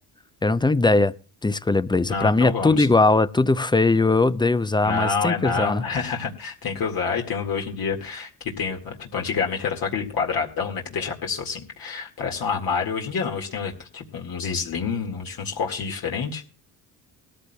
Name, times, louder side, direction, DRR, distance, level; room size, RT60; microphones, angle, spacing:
voice 1, 0.4-1.1 1.4-5.8, left 3 dB, 10° left, 0.5 m, -20 dB
voice 2, 2.1-2.9 4.8-16.4, left 5 dB, 60° left, 2.0 m, -28 dB
19.5 x 13.5 x 2.3 m
cardioid pair, 85°, 40 cm